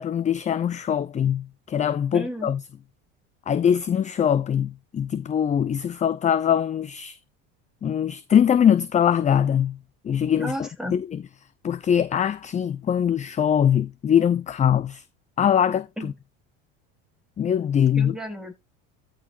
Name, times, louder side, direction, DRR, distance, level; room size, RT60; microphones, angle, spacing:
voice 1, 0.0-2.6 3.5-7.2 7.8-9.8 10.0-11.1 11.6-15.0 15.4-16.1 17.4-18.1, left 9 dB, 25° left, 0.6 m, -22 dB
voice 2, 2.1-2.6 10.4-11.0 16.0-16.1 18.0-18.5, equal, ahead, 3.5 m, -32 dB
14.0 x 4.8 x 2.5 m
supercardioid pair, 125°, 30 cm